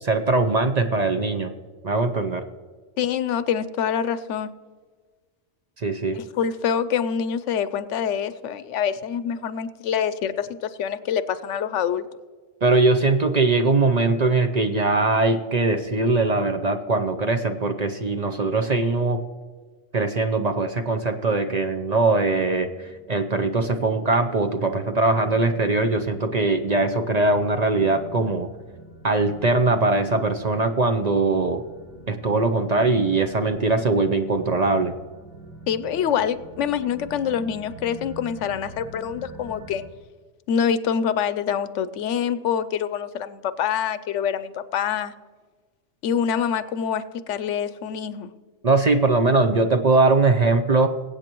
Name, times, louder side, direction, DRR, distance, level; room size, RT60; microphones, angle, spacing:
voice 1, 0.0-1.5 1.8-2.4 5.8-6.2 12.6-19.2 19.9-28.5 29.0-31.6 32.1-34.9 48.6-50.9, right 3 dB, 45° right, 8 dB, 0.6 m, -21 dB
voice 2, 3.0-4.5 6.1-12.1 35.7-39.8 40.5-45.1 46.0-48.3, left 8 dB, 85° left, 13 dB, 1.0 m, -25 dB
sound 1, 21.0-39.8, equal, 65° right, 4.9 m, -45 dB
22.0 x 8.4 x 3.0 m, 1.4 s
omnidirectional pair, 1.2 m